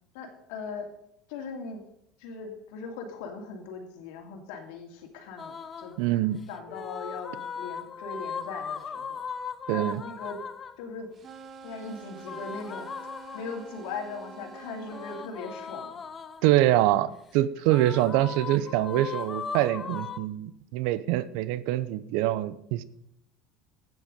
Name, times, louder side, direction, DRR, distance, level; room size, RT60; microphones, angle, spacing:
voice 1, 0.1-0.9 1.3-1.8 2.2-6.0 6.5-9.2 9.7-10.4 10.8-11.1 11.6-12.9 13.3-16.0, left 4 dB, 75° left, 3 dB, 2.8 m, -39 dB
sound 1, 5.4-6.0 6.7-10.8 12.2-13.8 14.9-16.6 17.7-20.2, left 6 dB, 30° left, 0.8 m, -38 dB
voice 2, 6.0-6.4 9.7-10.0 16.4-22.8, right 14 dB, 70° right, 17 dB, 0.7 m, -25 dB
sound 2, 11.1-15.3, right 4 dB, 35° right, 1.5 m, -47 dB
12.5 x 9.4 x 5.2 m, 0.76 s
supercardioid pair, 120°, 0 cm